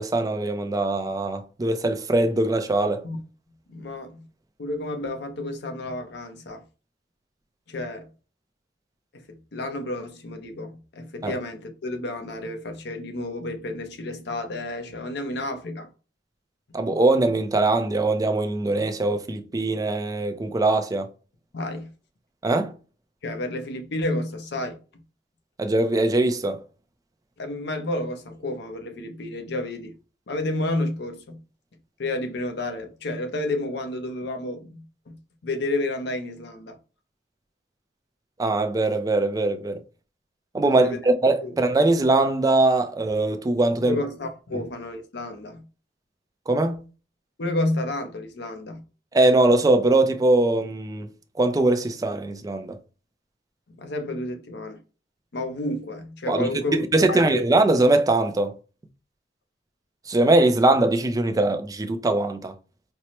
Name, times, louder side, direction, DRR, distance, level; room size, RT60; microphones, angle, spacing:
voice 1, 0.0-3.0 11.2-11.3 16.7-21.1 22.4-22.7 25.6-26.6 38.4-39.8 40.5-44.0 46.5-46.8 49.1-51.1 51.4-52.8 56.3-58.5 60.1-62.5, right 2 dB, 20° right, 0.4 m, -21 dB
voice 2, 3.7-4.3 4.6-6.6 7.7-8.1 9.1-15.9 16.7-16.8 21.5-21.9 23.2-24.8 27.4-29.9 30.3-31.4 32.0-36.8 40.8-41.0 41.4-41.5 43.8-45.7 47.4-48.8 53.7-54.8 55.3-56.8 57.0-57.4, left 2 dB, 65° left, 0.7 m, -31 dB
4.3 x 2.1 x 2.9 m
head